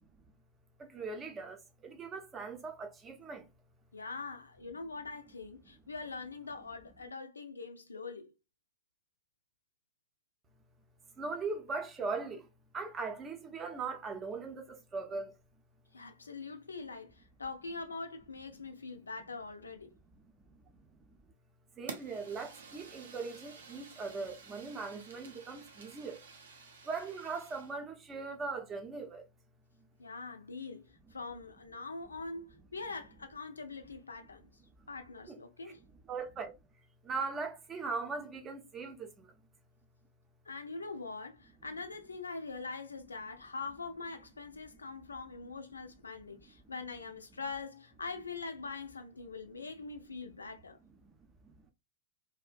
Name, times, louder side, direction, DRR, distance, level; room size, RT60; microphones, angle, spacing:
voice 1, 0.8-3.5 11.2-12.5 12.7-15.3 20.7-20.9 21.8-26.2 26.8-29.2 35.3-35.4 35.6-35.7 36.1-36.5 37.0-39.3 46.3-46.5 51.4-51.5, right 4 dB, 25° right, 0.5 m, -40 dB
voice 2, 3.9-8.3 15.9-19.9 30.0-34.5 34.9-35.8 40.5-50.8, left 4 dB, 75° left, 0.4 m, -43 dB
Fire, 21.9-27.8, right 5 dB, 65° right, 0.5 m, -51 dB
2.4 x 2.1 x 2.4 m
figure-of-eight pair, 90°, 0 cm